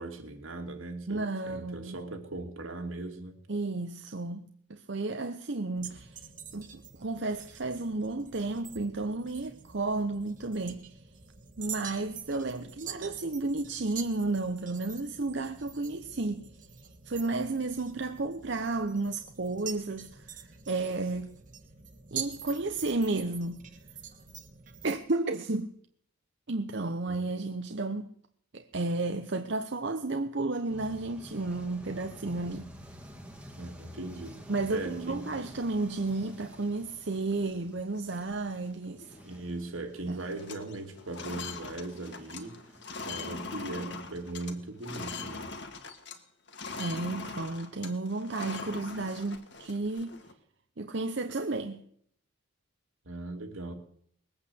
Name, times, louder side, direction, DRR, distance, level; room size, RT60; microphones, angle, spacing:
voice 1, 0.0-3.4 27.1-27.2 33.6-34.4 34.7-35.4 39.2-42.6 43.1-45.5 53.0-53.7, right 2 dB, 80° right, 2.7 m, -39 dB
voice 2, 1.1-2.0 3.5-6.2 6.5-11.0 11.6-16.5 17.0-21.3 22.1-23.7 24.8-25.7 26.5-28.1 28.5-32.7 34.5-39.1 40.1-40.2 46.8-50.1 50.8-51.8, right 2 dB, 55° right, 0.8 m, -32 dB
sound 1, 5.8-24.9, right 7 dB, 40° right, 1.5 m, -46 dB
sound 2, 30.7-45.2, equal, 5° right, 1.6 m, -51 dB
sound 3, 35.3-36.3 36.8-36.9 37.1-37.5 37.9-38.2 38.4-39.5 39.8-40.0 40.3-46.2 46.5-50.3, left 4 dB, 55° left, 1.8 m, -42 dB
20.5 x 8.7 x 7.8 m
head